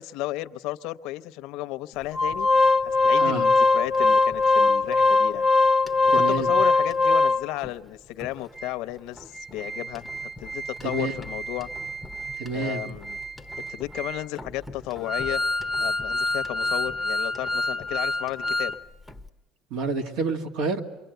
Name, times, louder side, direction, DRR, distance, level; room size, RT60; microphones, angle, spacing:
voice 1, 0.0-2.5 2.8-5.4 6.1-10.1 10.4-11.7 12.5-13.2 13.7-15.4 15.8-18.7, left 16 dB, 75° left, 0.8 m, -33 dB
Organ, 2.1-7.7 8.2-8.3 8.6-8.7 9.2-18.8 19.1-19.2, left 3 dB, 5° right, 0.8 m, -24 dB
voice 2, 3.1-3.5 6.1-6.5 10.8-11.2 12.4-12.8 19.7-20.8, right 3 dB, 75° right, 2.2 m, -28 dB
28.0 x 23.0 x 8.0 m
cardioid pair, 150°, 0 cm